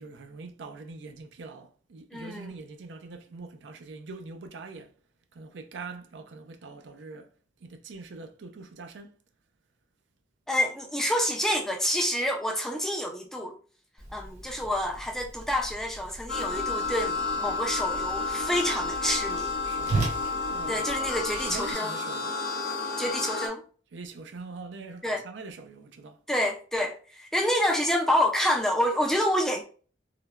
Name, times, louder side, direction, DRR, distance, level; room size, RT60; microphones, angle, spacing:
voice 1, 0.0-4.9 5.3-7.3 7.6-9.2 19.6-20.8 21.3-22.4 23.9-26.2, right 3 dB, 80° right, 0.4 m, -43 dB
voice 2, 2.1-2.5 10.5-13.5 14.1-19.5 20.7-21.9 23.0-23.6 25.0-25.2 26.3-29.6, equal, 5° left, 0.3 m, -28 dB
Whoosh swoosh swish, 14.0-21.7, right 3 dB, 40° right, 0.9 m, -37 dB
sound 1, 16.3-23.5, left 4 dB, 60° left, 0.5 m, -31 dB
3.2 x 2.0 x 2.3 m
head